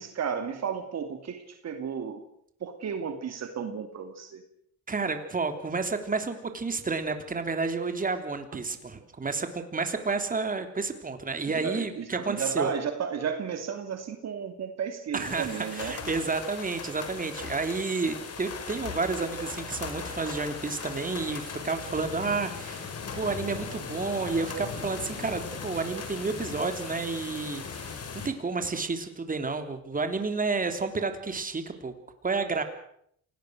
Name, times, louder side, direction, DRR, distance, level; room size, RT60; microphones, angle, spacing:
voice 1, 0.0-2.2 2.6-4.4 11.5-16.0, right 7 dB, 60° right, 7 dB, 2.5 m, -33 dB
voice 2, 4.9-12.7 15.1-31.9 32.2-32.6, right 4 dB, 30° right, 7 dB, 3.4 m, -31 dB
sound 1, 15.2-28.3, left 5 dB, 55° left, 4.7 m, -38 dB
28.0 x 18.5 x 6.5 m, 0.68 s
cardioid pair, 90°, 30 cm